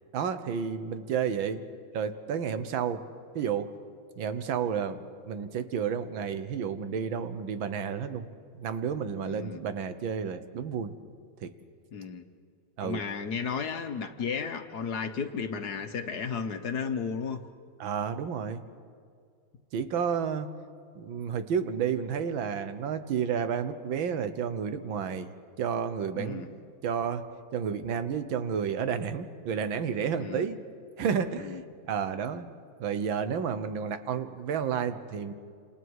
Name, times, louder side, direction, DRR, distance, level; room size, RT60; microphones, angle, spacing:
voice 1, 0.1-1.6 1.9-3.0 3.3-3.7 4.2-8.3 8.5-10.9 11.4-11.5 12.8-13.0 17.8-18.6 19.7-20.5 20.9-25.3 25.6-26.6 26.8-27.2 27.5-30.6 31.0-31.6 31.9-32.5 32.8-35.3, right 7 dB, 70° right, 11 dB, 1.7 m, -31 dB
voice 2, 9.2-9.6 11.9-12.2 12.8-17.4 26.1-26.5 30.2-30.5 31.4-31.6, left 6 dB, 55° left, 8 dB, 1.4 m, -34 dB
28.5 x 27.5 x 4.8 m, 2.2 s
omnidirectional pair, 2.2 m